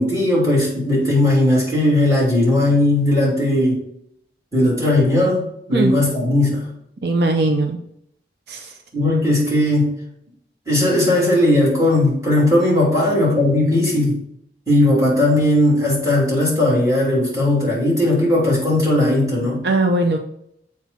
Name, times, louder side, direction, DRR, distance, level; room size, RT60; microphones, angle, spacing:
voice 1, 0.0-3.8 4.5-6.6 8.9-9.9 10.7-14.2 14.7-19.6, left 1 dB, 20° right, -5 dB, 3.0 m, -17 dB
voice 2, 7.0-7.8 8.5-8.7 19.6-20.2, right 2 dB, 70° right, 4 dB, 0.6 m, -19 dB
7.4 x 4.7 x 4.2 m, 0.74 s
head